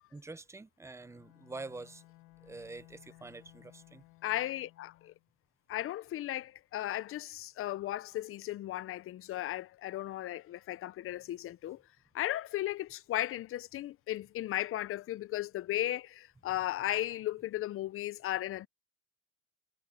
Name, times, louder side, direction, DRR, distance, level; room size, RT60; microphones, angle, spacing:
voice 1, 0.1-2.0 2.4-4.0, right 3 dB, 10° right, 0.6 m, -46 dB
Bowed string instrument, 1.0-5.3, left 19 dB, 85° left, 1.8 m, -59 dB
voice 2, 4.2-5.1 5.7-11.8 12.1-18.7, left 14 dB, 45° left, 0.5 m, -36 dB
cardioid pair, 130°, 30 cm